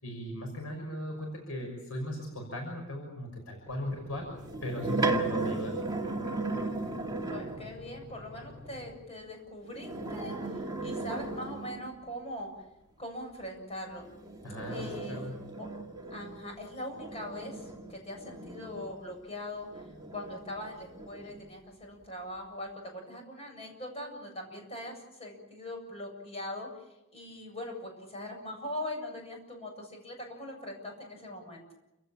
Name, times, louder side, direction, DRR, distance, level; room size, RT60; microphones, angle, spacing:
voice 1, 0.0-4.3 4.6-5.8 14.4-15.4, left 1 dB, 80° left, 2 dB, 6.1 m, -38 dB
sound 1, 3.7-8.9, left 1 dB, 10° left, 4.5 m, -49 dB
sound 2, 4.4-7.7 9.7-12.0 14.0-19.2 19.7-21.5, right 2 dB, 20° right, 2.1 m, -36 dB
voice 2, 7.3-10.4 10.8-12.5 13.0-14.0 14.7-15.3 15.6-15.7 16.1-19.8 20.1-26.7 27.1-31.6, left 1 dB, 30° left, 3 dB, 7.7 m, -41 dB
29.0 x 16.5 x 8.7 m, 0.93 s
head